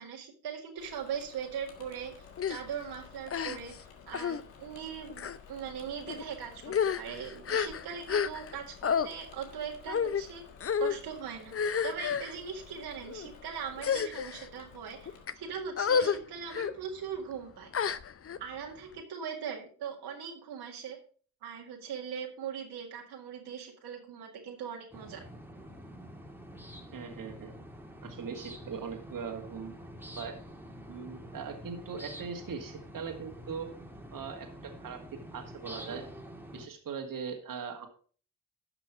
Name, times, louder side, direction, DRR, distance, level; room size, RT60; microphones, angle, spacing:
voice 1, 0.0-3.7 4.1-10.4 10.8-11.5 11.8-15.1 15.3-17.7 18.4-21.0 21.4-25.2, right 7 dB, 70° right, 1 dB, 2.0 m, -40 dB
Engine / Mechanisms, 0.8-15.3, left 6 dB, 85° left, 1.6 m, -54 dB
sound 1, 2.4-2.6 3.3-3.8 4.1-4.4 5.1-5.4 6.1-6.2 6.6-8.6 8.8-9.1 9.9-10.2 10.6-11.0 11.5-12.3 13.0-13.3 13.8-14.5 15.1-15.3 15.8-16.2 16.5-16.7 17.7-18.4, left 7 dB, 35° left, 0.7 m, -30 dB
sound 2, 24.9-36.7, equal, 5° right, 2.0 m, -47 dB
voice 2, 26.9-27.5 28.0-29.7 30.2-30.4 30.9-33.7 34.1-35.0 35.3-36.0 36.5-37.9, right 6 dB, 50° right, 4 dB, 2.0 m, -40 dB
11.5 x 6.0 x 4.8 m, 0.42 s
hypercardioid pair, 45°, 41 cm